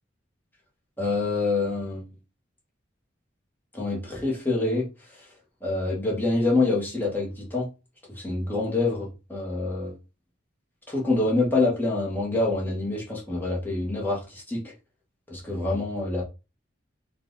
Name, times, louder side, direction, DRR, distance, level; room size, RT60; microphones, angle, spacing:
voice 1, 1.0-2.0 3.7-4.9 5.6-7.7 8.1-9.9 10.9-14.6 15.3-16.2, left 2 dB, 10° left, 1.3 m, -26 dB
4.3 x 2.5 x 3.9 m
head